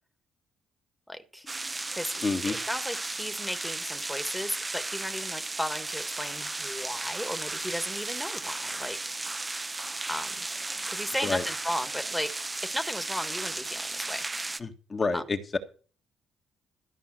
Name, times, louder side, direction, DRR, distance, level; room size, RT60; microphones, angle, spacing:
voice 1, 1.1-1.5 1.9-9.1 10.1-10.4 10.9-12.3 12.6-14.3 15.1-15.2, equal, 5° left, 8 dB, 1.6 m, -35 dB
sound 1, 1.5-14.6, right 2 dB, 20° right, 0.7 m, -35 dB
voice 2, 2.2-2.6 11.2-11.4 14.6-15.6, left 4 dB, 35° left, 6 dB, 1.7 m, -29 dB
13.5 x 5.5 x 7.6 m, 0.36 s
cardioid pair, 90°, 0 cm